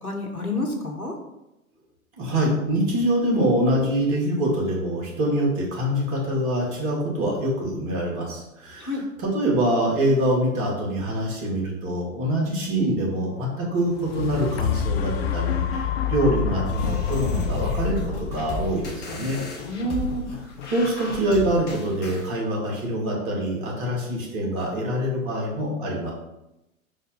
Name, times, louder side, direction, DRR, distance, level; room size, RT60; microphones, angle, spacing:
voice 1, 0.0-1.1 8.8-9.0 19.7-20.3, left 1 dB, 85° left, 1 dB, 1.3 m, -28 dB
voice 2, 2.2-19.4 20.6-26.1, right 1 dB, 35° right, -3 dB, 2.0 m, -25 dB
sound 1, 13.8-21.8 22.4-22.5, left 8 dB, 45° left, 0.4 m, -28 dB
sound 2, 16.7-22.3, left 1 dB, 25° left, 1.4 m, -35 dB
5.7 x 4.2 x 3.9 m, 0.91 s
figure-of-eight pair, 100°, 42 cm